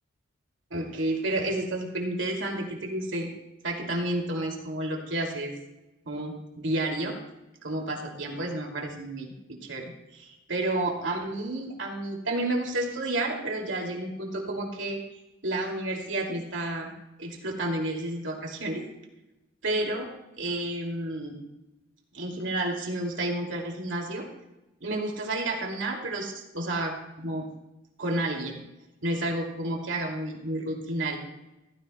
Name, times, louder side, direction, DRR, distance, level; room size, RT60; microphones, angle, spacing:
voice 1, 0.7-3.3 3.6-5.5 6.1-7.2 7.6-15.0 15.4-16.9 17.2-18.8 19.6-20.1 20.4-21.4 22.1-24.3 24.8-27.4 28.0-28.6 29.0-31.2, right 1 dB, 70° right, 1 dB, 2.6 m, -31 dB
16.0 x 14.5 x 2.2 m, 0.96 s
head